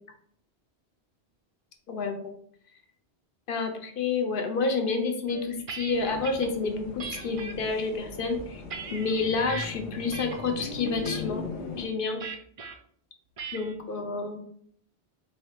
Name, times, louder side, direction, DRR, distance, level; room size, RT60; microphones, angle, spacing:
voice 1, 1.9-2.3 3.5-8.6 8.9-11.4 11.7-12.2 13.5-14.4, left 4 dB, 60° left, 4 dB, 0.8 m, -29 dB
sound 1, 5.3-6.5 7.0-7.5 8.1-9.7 10.1-10.5 10.8-11.2 12.2-12.7 13.4-13.8, right 5 dB, 55° right, 0.4 m, -39 dB
sound 2, 5.9-11.9, left 4 dB, 90° left, 1.0 m, -39 dB
3.3 x 2.3 x 4.4 m, 0.63 s
omnidirectional pair, 1.1 m